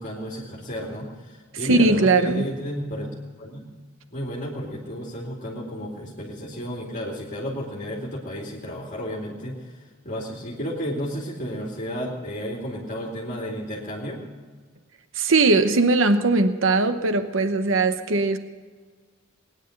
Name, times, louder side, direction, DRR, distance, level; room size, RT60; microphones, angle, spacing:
voice 1, 0.0-3.1 3.4-3.7 4.1-9.8 10.0-14.2, equal, 35° left, -4 dB, 2.6 m, -32 dB
voice 2, 1.6-2.5 15.1-18.4, right 3 dB, 65° right, 10 dB, 0.9 m, -20 dB
20.0 x 10.0 x 6.5 m, 1.5 s
head